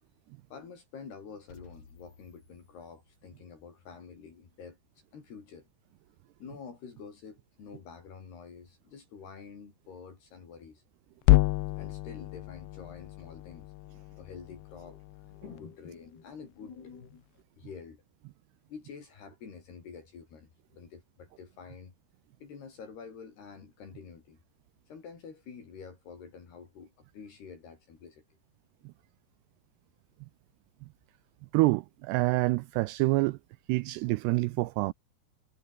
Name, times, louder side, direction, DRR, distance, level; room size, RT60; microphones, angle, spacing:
voice 1, 0.5-4.8 5.1-5.7 6.4-10.8 11.8-13.7 14.1-17.2 17.6-18.0 18.7-21.9 22.4-24.4 24.9-28.2, left 6 dB, 60° left, 6.6 m, -48 dB
sound 1, 1.5-3.5, left 4 dB, 30° left, 4.8 m, -56 dB
sound 2, 11.2-15.6, left 19 dB, 80° left, 2.4 m, -29 dB
voice 2, 31.5-33.4 33.7-34.9, right 21 dB, 85° right, 2.4 m, -27 dB
omnidirectional pair, 5.2 m